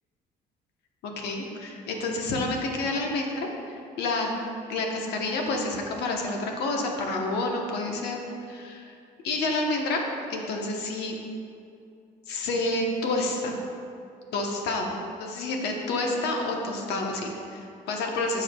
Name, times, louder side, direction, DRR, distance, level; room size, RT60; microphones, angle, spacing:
voice 1, 1.0-4.3 4.7-8.2 8.5-8.9 9.2-10.0 10.3-11.2 12.3-13.6 14.3-18.4, left 2 dB, 80° left, 1 dB, 1.1 m, -29 dB
12.5 x 4.7 x 2.3 m, 2.5 s
cardioid pair, 110°, 17 cm